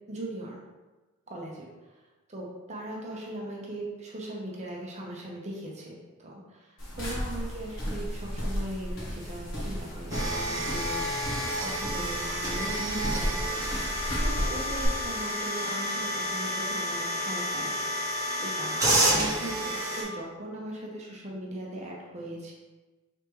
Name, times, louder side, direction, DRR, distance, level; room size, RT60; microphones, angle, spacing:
voice 1, 0.1-0.6 1.3-2.0 2.3-13.8 14.2-17.7 18.4-22.5, right 1 dB, 30° right, -2 dB, 0.7 m, -39 dB
sound 1, 6.8-14.9, equal, 65° left, 1.2 m, -34 dB
sound 2, 10.1-20.0, equal, 15° right, 1.1 m, -30 dB
4.7 x 3.5 x 3.1 m, 1.2 s
head